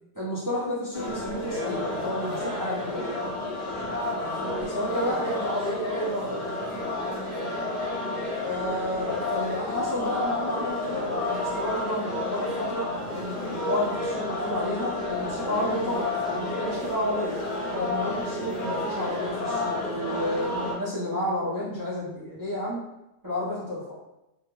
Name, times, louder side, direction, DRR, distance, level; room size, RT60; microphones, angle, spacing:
voice 1, 0.1-3.1 4.4-6.4 8.4-17.4 17.7-22.8 23.2-23.8, left 1 dB, 25° right, -9 dB, 0.5 m, -31 dB
sound 1, 0.9-20.7, left 2 dB, 45° left, 0.8 m, -31 dB
2.4 x 2.3 x 3.0 m, 0.91 s
omnidirectional pair, 1.2 m